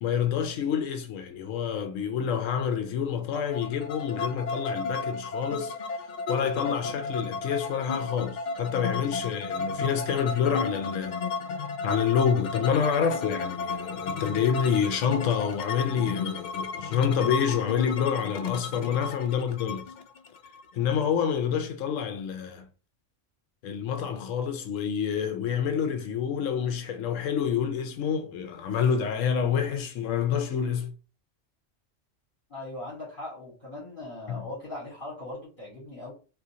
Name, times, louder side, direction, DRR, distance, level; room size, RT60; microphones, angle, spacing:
voice 1, 0.0-5.7 6.3-11.2 11.8-19.9 20.7-22.7 23.6-30.9 34.3-34.4, left 7 dB, 90° left, 1.0 m, -28 dB
sound 1, 3.3-21.0, left 4 dB, 65° left, 0.4 m, -33 dB
voice 2, 32.5-36.1, left 2 dB, 40° left, 1.7 m, -39 dB
3.7 x 2.7 x 2.7 m
omnidirectional pair, 1.3 m